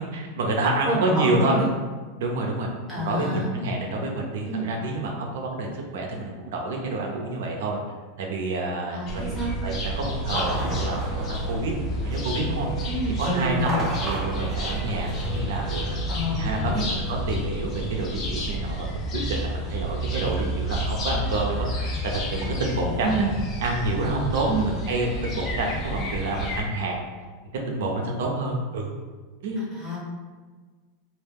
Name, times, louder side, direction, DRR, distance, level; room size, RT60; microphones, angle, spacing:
voice 1, 0.1-1.6 2.2-2.7 3.0-7.8 8.2-11.7 12.0-12.7 13.2-23.3 23.6-27.0 27.7-28.9 29.4-29.8, right 2 dB, 80° right, 0 dB, 0.5 m, -28 dB
voice 2, 0.9-1.7 2.9-3.5 4.5-4.7 8.9-9.5 12.9-13.8 16.1-16.9 22.8-23.3 24.5-24.7 29.7-30.0, equal, ahead, -9 dB, 1.1 m, -28 dB
sound 1, 9.1-26.6, equal, 35° left, 0.5 m, -30 dB
sound 2, 10.2-12.4 13.5-16.0, right 2 dB, 20° right, 0.5 m, -34 dB
2.3 x 2.1 x 3.3 m, 1.4 s
supercardioid pair, 145°, 0 cm